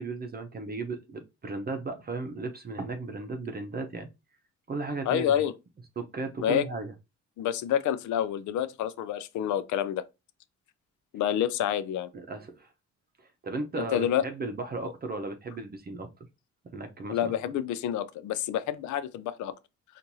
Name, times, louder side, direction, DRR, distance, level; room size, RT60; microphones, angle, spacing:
voice 1, 0.0-4.1 4.7-5.4 6.0-6.9 12.1-12.7 13.2-16.1 16.7-17.3, right 3 dB, 30° right, 0.7 m, -35 dB
voice 2, 5.1-5.5 6.4-6.6 7.4-10.0 11.1-12.1 13.8-14.2 17.1-19.5, left 10 dB, 75° left, 0.5 m, -28 dB
4.4 x 2.5 x 2.7 m
cardioid pair, 90°, 30 cm